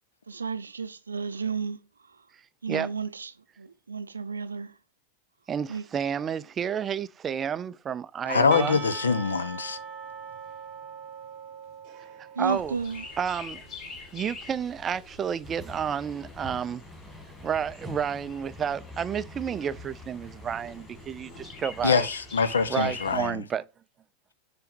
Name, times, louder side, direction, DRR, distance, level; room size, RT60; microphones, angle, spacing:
voice 1, 0.3-1.8 2.1-2.2 2.6-3.3 3.6-4.8 5.7-5.8 12.4-13.0, right 5 dB, 75° right, 0.5 m, -32 dB
voice 2, 5.5-8.8 12.4-12.7 13.2-13.6 14.1-16.8 17.4-22.1 22.7-23.6, right 8 dB, 25° right, 0.3 m, -30 dB
voice 3, 8.3-9.8 21.8-23.4, left 5 dB, 70° left, 0.7 m, -24 dB
Percussion / Church bell, 8.5-13.5, right 7 dB, 40° right, 0.8 m, -41 dB
Chirp tweet, 12.4-23.3, left 4 dB, 30° left, 3.4 m, -45 dB
sound 1, 15.4-21.9, left 2 dB, ahead, 1.9 m, -46 dB
6.9 x 3.5 x 4.4 m
figure-of-eight pair, 90°, 0 cm